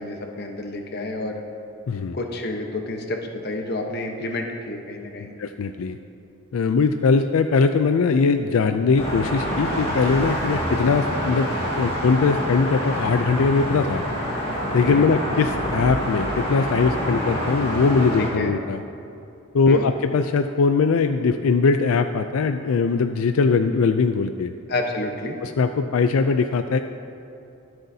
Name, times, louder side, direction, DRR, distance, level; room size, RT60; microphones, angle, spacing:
voice 1, 0.0-1.4 2.1-5.3 14.8-15.1 18.4-18.5 19.7-19.9 24.7-25.4, left 2 dB, 50° left, 3 dB, 1.0 m, -29 dB
voice 2, 1.9-2.2 5.2-6.0 6.5-11.5 11.8-14.0 14.7-18.8 19.5-24.5 25.4-26.8, left 4 dB, 85° left, 8 dB, 0.4 m, -21 dB
sound 1, 9.0-18.3, equal, 25° left, 2.1 m, -26 dB
23.5 x 7.8 x 2.8 m, 2.7 s
head